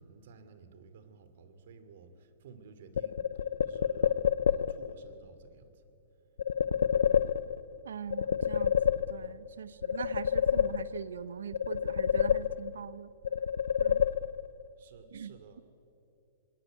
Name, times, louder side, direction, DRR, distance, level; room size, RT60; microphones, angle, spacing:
voice 1, 0.0-5.8 14.7-15.6, right 5 dB, 65° right, 10 dB, 2.8 m, -54 dB
sound 1, 2.9-4.9 6.4-7.7 8.1-9.5 9.8-11.2 11.5-12.9 13.2-14.6, left 8 dB, 80° left, 0.7 m, -28 dB
voice 2, 7.8-13.1 13.8-14.0 15.1-15.6, right 7 dB, 85° right, 16 dB, 1.0 m, -42 dB
26.0 x 19.5 x 9.3 m, 2.8 s
hypercardioid pair, 135°, 0 cm